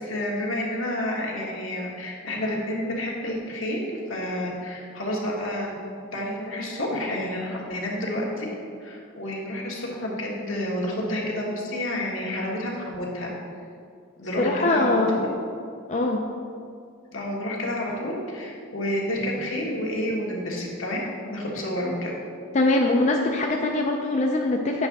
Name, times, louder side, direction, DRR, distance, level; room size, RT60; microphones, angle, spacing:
voice 1, 0.0-5.8 6.1-8.5 8.8-13.3 14.2-15.3 17.1-22.1, left 1 dB, 80° left, -3 dB, 1.5 m, -29 dB
voice 2, 14.4-15.1 15.9-16.2 22.5-24.9, left 2 dB, 35° left, 1 dB, 0.4 m, -22 dB
7.9 x 3.6 x 5.9 m, 2.4 s
head